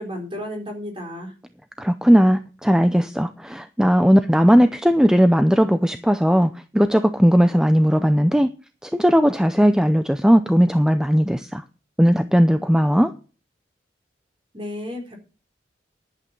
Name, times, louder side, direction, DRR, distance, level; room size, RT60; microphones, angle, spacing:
voice 1, 0.0-1.3 14.5-15.2, left 1 dB, 30° right, 4.1 m, -32 dB
voice 2, 1.8-8.5 8.8-11.6 12.0-13.1, equal, 5° right, 0.5 m, -17 dB
11.0 x 8.6 x 5.9 m
head